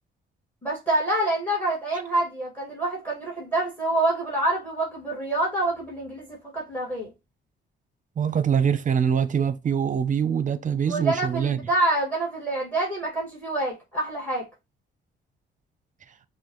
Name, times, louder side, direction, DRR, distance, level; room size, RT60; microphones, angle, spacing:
voice 1, 0.6-7.1 10.9-14.5, right 2 dB, 10° left, 1.9 m, -26 dB
voice 2, 8.2-11.6, right 7 dB, 40° right, 0.6 m, -24 dB
6.2 x 2.3 x 3.0 m
cardioid pair, 90°, 20 cm